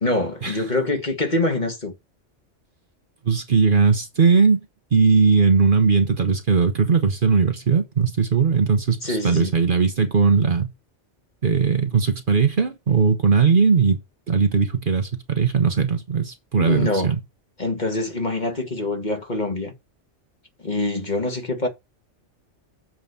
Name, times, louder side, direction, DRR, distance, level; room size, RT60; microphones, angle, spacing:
voice 1, 0.0-1.9 9.0-9.5 16.6-17.1 17.6-19.7 20.6-21.7, left 2 dB, 40° left, 2.0 m, -25 dB
voice 2, 3.2-4.6 4.9-10.7 11.4-14.0 14.3-17.2, right 5 dB, 45° right, 1.1 m, -19 dB
7.5 x 4.1 x 6.7 m
omnidirectional pair, 1.2 m